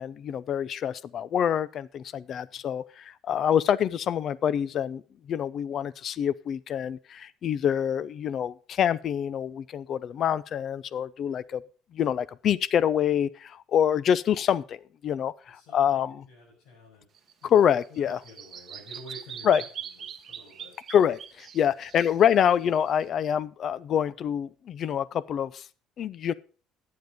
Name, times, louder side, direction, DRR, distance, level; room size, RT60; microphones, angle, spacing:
voice 1, 0.0-5.0 5.3-11.6 11.9-16.3 17.4-18.2 19.4-19.6 20.9-25.7 26.0-26.3, left 9 dB, 40° left, 0.5 m, -26 dB
voice 2, 2.2-2.6 11.3-11.4 15.5-16.0 16.3-17.0 17.4-17.6 17.9-19.5 20.1-20.7, left 1 dB, 70° left, 5.6 m, -50 dB
Bird vocalization bird call bird song, 17.1-23.0, right 8 dB, 30° right, 1.0 m, -43 dB
12.0 x 9.5 x 5.0 m
cardioid pair, 165°, 0 cm